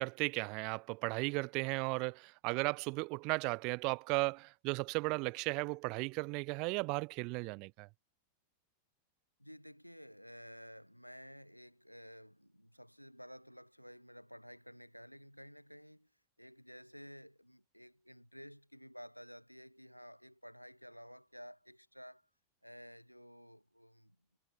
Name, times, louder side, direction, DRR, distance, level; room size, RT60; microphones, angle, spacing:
voice 1, 0.0-7.9, right 29 dB, 45° right, 0.3 m, -35 dB
voice 2, 9.4-16.1 16.4-22.2 22.6-24.2, equal, 90° left, 2.1 m, -53 dB
figure-of-eight pair, 90°, 0 cm